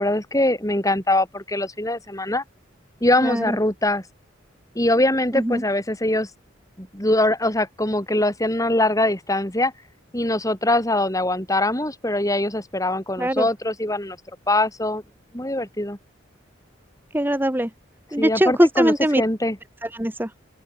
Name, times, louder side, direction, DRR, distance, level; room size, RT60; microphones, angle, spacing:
voice 1, 0.0-2.4 3.0-4.0 4.7-6.3 6.8-9.7 10.1-14.2 14.5-15.0 15.3-16.0 18.2-19.6, left 1 dB, 15° left, 4.6 m, -22 dB
voice 2, 3.2-3.6 5.3-5.6 13.2-13.5 17.1-17.7 18.1-19.2 19.8-20.3, right 1 dB, 10° right, 1.3 m, -21 dB
open air
head